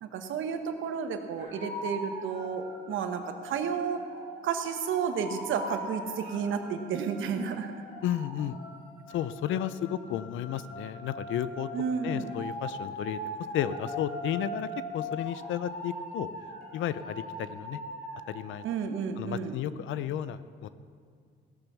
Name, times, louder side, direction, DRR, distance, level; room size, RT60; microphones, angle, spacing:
voice 1, 0.0-4.0 4.4-7.8 11.7-12.3 18.6-19.6, right 6 dB, 80° right, 7 dB, 1.1 m, -32 dB
sound 1, 1.4-18.6, equal, 50° left, 3.2 m, -41 dB
voice 2, 8.0-8.6 9.1-11.7 12.0-13.2 13.5-14.7 14.9-16.3 16.7-17.8 18.3-18.6 19.2-20.7, left 11 dB, 80° left, 14 dB, 0.5 m, -33 dB
16.5 x 7.0 x 6.0 m, 2.2 s
cardioid pair, 90°, 20 cm